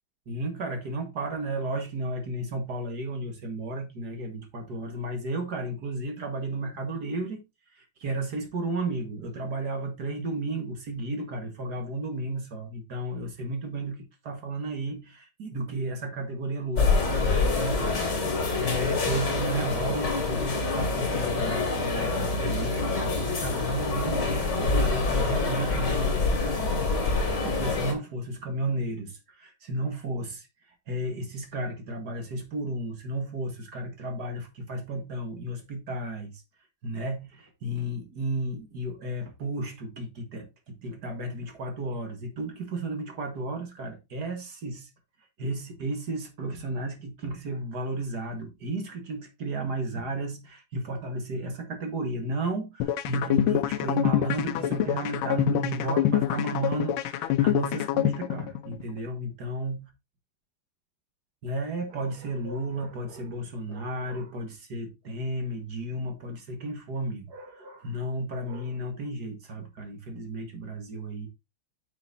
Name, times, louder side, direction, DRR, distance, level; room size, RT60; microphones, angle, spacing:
voice 1, 0.3-7.4 7.7-30.5 30.9-36.4 36.8-44.9 45.4-59.8 61.4-71.3, right 1 dB, 50° right, 2.1 m, -33 dB
sound 1, 16.7-27.9, left 3 dB, 55° left, 2.7 m, -26 dB
sound 2, 52.8-58.8, left 12 dB, 75° left, 1.5 m, -26 dB
9.6 x 6.1 x 2.8 m
omnidirectional pair, 2.3 m